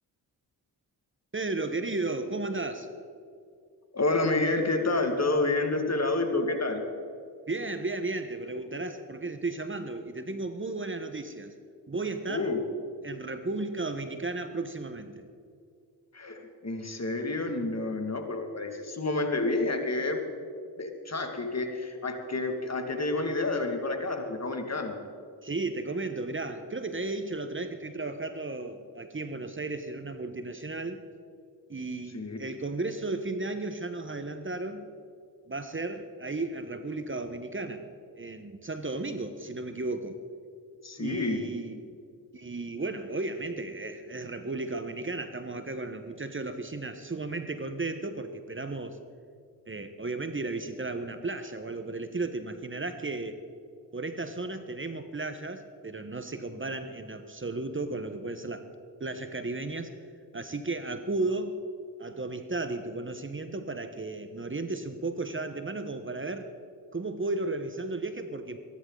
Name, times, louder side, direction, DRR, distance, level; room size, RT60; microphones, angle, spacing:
voice 1, 1.3-2.9 7.5-11.5 11.9-12.5 13.0-15.2 25.4-31.0 31.7-34.9 35.5-37.9 38.2-40.2 41.0-41.9 42.3-49.0 49.7-53.4 53.9-58.7 59.0-59.9 60.3-61.6 62.0-66.5 66.9-68.6, right 2 dB, 30° right, 8 dB, 1.3 m, -34 dB
voice 2, 3.9-6.8 12.3-12.6 16.1-20.2 20.8-25.0 32.1-32.5 40.8-41.4, left 2 dB, 40° left, 4 dB, 2.3 m, -29 dB
23.0 x 11.0 x 4.0 m, 2.3 s
supercardioid pair, 40°, 42 cm